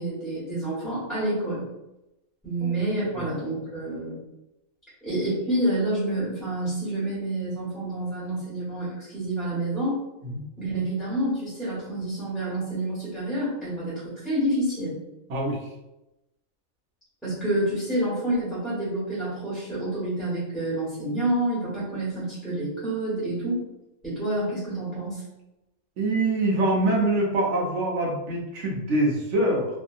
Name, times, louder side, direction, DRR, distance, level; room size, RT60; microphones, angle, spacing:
voice 1, 0.0-1.6 2.4-4.2 5.0-10.0 10.6-14.9 17.2-23.6 24.0-25.2, right 1 dB, ahead, -10 dB, 1.2 m, -28 dB
voice 2, 26.0-29.7, right 1 dB, 60° right, -2 dB, 1.0 m, -24 dB
2.6 x 2.6 x 2.4 m, 0.94 s
omnidirectional pair, 1.5 m